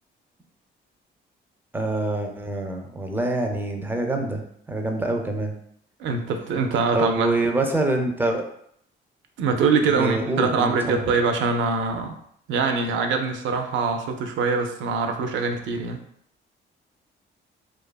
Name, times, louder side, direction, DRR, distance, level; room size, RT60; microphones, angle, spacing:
voice 1, 1.7-4.4 4.7-5.5 6.9-8.4 9.8-11.0, right 2 dB, 10° right, 3 dB, 0.4 m, -25 dB
voice 2, 6.0-7.3 9.4-12.2 12.5-16.0, right 4 dB, 70° right, 5 dB, 0.4 m, -23 dB
2.6 x 2.4 x 2.2 m, 0.69 s
cardioid pair, 90°, 20 cm